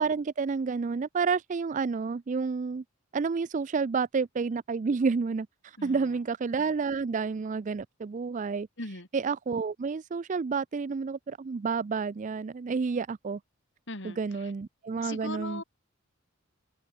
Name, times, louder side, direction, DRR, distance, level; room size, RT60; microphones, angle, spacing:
voice 1, 0.0-2.8 3.1-8.7 9.1-13.4 14.0-15.6, right 5 dB, 35° right, 0.4 m, -30 dB
voice 2, 5.8-6.2 8.8-9.1 13.9-14.5 15.0-15.6, left 2 dB, 60° left, 4.8 m, -40 dB
head